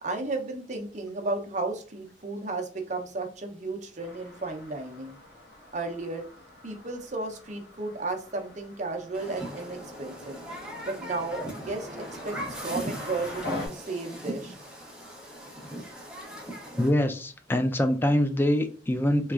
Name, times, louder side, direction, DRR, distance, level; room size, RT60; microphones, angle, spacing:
voice 1, 0.0-5.2 5.7-6.3 6.6-10.4 10.8-14.6, right 3 dB, 40° right, 3 dB, 0.6 m, -34 dB
sound 1, 4.0-13.7, left 2 dB, 60° left, 1.0 m, -43 dB
Human group actions, 9.1-16.9, equal, 5° right, 0.7 m, -39 dB
voice 2, 16.8-19.3, left 1 dB, 10° left, 7 dB, 0.3 m, -24 dB
3.4 x 3.0 x 2.4 m, 0.39 s
head